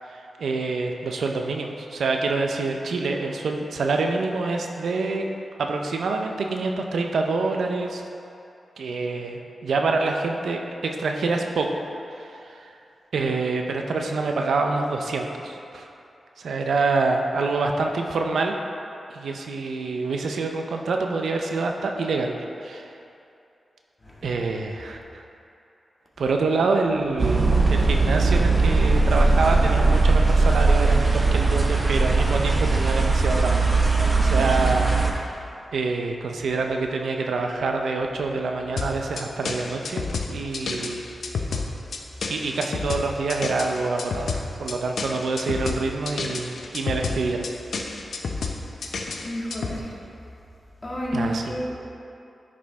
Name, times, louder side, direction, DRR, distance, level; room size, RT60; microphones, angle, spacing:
voice 1, 0.1-5.3 5.6-8.0 8.8-11.7 12.1-12.7 13.1-15.9 16.4-18.5 19.1-22.3 22.6-22.9 24.2-25.2 26.2-35.5 35.7-41.1 42.3-44.3 44.6-47.5 51.1-51.4, right 3 dB, 85° right, 3 dB, 0.6 m, -26 dB
sound 1, 27.2-35.1, right 3 dB, 40° right, 0.9 m, -19 dB
voice 2, 34.0-34.5 49.2-50.0 50.8-51.8, equal, 25° left, -5 dB, 1.7 m, -31 dB
sound 2, 38.8-49.8, left 4 dB, 80° left, 0.6 m, -30 dB
9.9 x 5.0 x 3.5 m, 2.6 s
cardioid pair, 70°, 0 cm